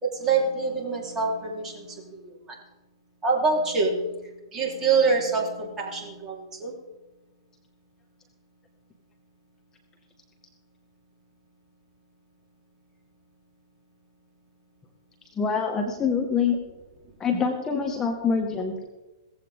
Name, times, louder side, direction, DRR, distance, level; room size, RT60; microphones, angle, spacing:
voice 1, 0.0-2.6 3.2-6.8, right 4 dB, 20° right, -1 dB, 4.1 m, -26 dB
voice 2, 15.4-16.6 17.2-18.8, left 5 dB, 20° left, 2 dB, 1.8 m, -25 dB
18.0 x 15.0 x 3.8 m, 1.1 s
hypercardioid pair, 120°, 3 cm